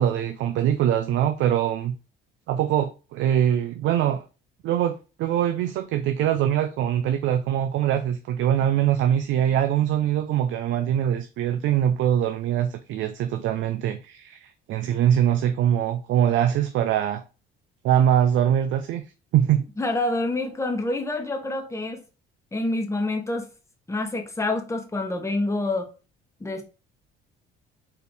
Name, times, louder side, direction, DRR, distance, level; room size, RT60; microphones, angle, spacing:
voice 1, 0.0-1.9 2.5-4.2 4.6-17.2 17.8-19.0 19.3-19.6, right 10 dB, 65° right, 0.5 m, -23 dB
voice 2, 19.8-22.0 22.5-23.5 23.9-25.9 26.4-26.6, left 2 dB, 15° left, 0.9 m, -27 dB
4.4 x 2.7 x 3.4 m
cardioid pair, 110°, 21 cm